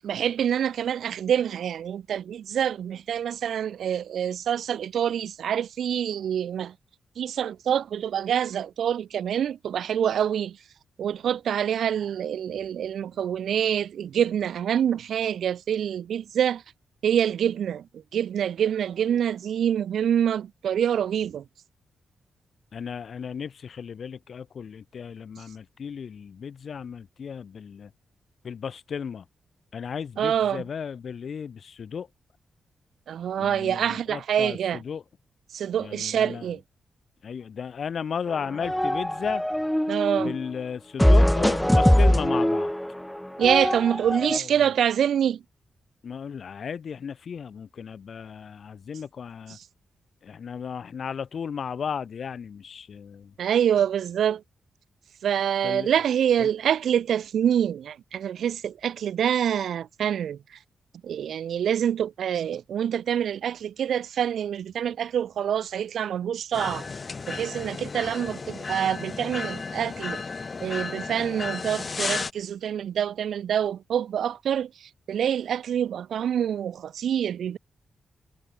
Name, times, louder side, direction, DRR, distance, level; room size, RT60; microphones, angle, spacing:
voice 1, 0.0-6.7 7.2-10.6 11.0-16.6 17.0-21.4 30.2-30.6 33.1-34.8 35.5-36.6 39.9-40.4 43.4-45.4 49.5-49.6 53.4-54.4 55.2-60.4 61.0-66.9 67.3-70.2 70.6-77.6, right 9 dB, 80° right, 2.3 m, -26 dB
voice 2, 22.7-27.9 28.4-29.2 29.7-32.1 33.4-35.0 35.8-36.5 37.2-39.4 40.2-42.7 44.3-44.7 46.0-49.6 50.2-53.3 55.6-55.9 56.4-56.5, left 7 dB, 55° left, 3.2 m, -35 dB
sound 1, 38.3-40.4 41.0-44.4, equal, 5° left, 1.7 m, -22 dB
sound 2, 66.5-72.3, left 4 dB, 35° left, 4.8 m, -33 dB
wide cardioid pair, 140°, 0 cm